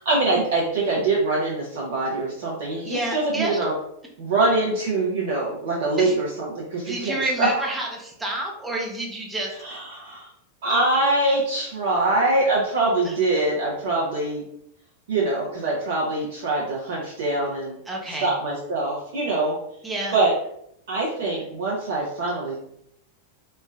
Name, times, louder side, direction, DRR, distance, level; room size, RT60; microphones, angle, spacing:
voice 1, 0.1-3.7 4.2-7.7 9.6-10.3 10.6-14.4 15.1-17.7 18.2-19.6 20.1-20.3 20.9-22.6, right 2 dB, 55° right, -4 dB, 0.6 m, -24 dB
voice 2, 2.8-3.6 6.0-6.2 6.9-9.6 13.0-13.2 17.9-18.3 19.8-20.2, right 1 dB, 10° right, -1 dB, 0.6 m, -29 dB
3.2 x 2.1 x 2.2 m, 0.74 s
figure-of-eight pair, 90°, 0 cm